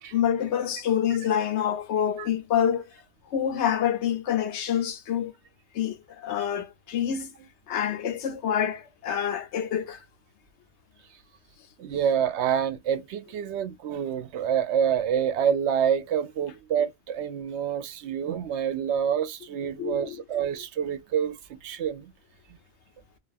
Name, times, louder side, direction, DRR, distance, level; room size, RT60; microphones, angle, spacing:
voice 1, 0.1-2.8 3.3-5.3 5.7-7.3 7.7-10.0 19.8-20.2, left 9 dB, 80° left, 0.9 m, -27 dB
voice 2, 11.8-22.1, right 8 dB, 80° right, 0.9 m, -27 dB
2.4 x 2.3 x 2.5 m
omnidirectional pair, 1.1 m